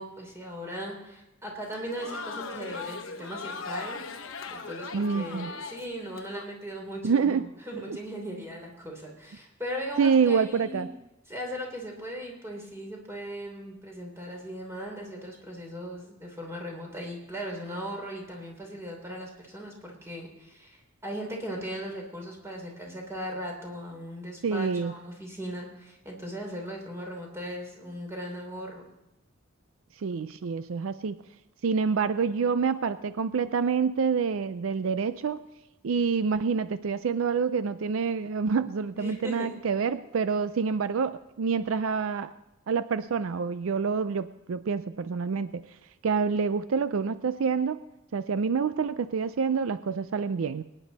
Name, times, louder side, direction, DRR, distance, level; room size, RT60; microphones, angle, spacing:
voice 1, 0.0-10.9 11.3-28.9 38.9-39.6, equal, 15° right, 0 dB, 3.2 m, -38 dB
Crowd, 1.6-6.5, left 4 dB, 65° left, 1.0 m, -39 dB
voice 2, 4.9-5.5 7.0-7.4 7.9-8.0 10.0-10.9 24.4-24.9 30.0-31.2 31.6-35.4 35.8-42.3 42.7-45.6 46.0-47.8 48.1-50.6, right 5 dB, 65° right, 13 dB, 0.4 m, -27 dB
23.0 x 10.0 x 4.0 m, 0.92 s
head